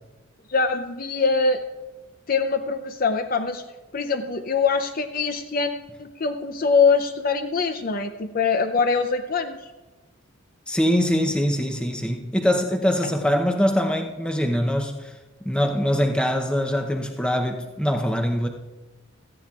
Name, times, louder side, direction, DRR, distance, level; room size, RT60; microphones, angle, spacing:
voice 1, 0.5-1.6 2.3-3.6 3.9-5.7 6.0-9.6, left 4 dB, 40° left, 0.5 m, -23 dB
voice 2, 10.7-15.1 15.4-18.5, equal, 5° left, 0.7 m, -23 dB
17.5 x 13.5 x 2.4 m
head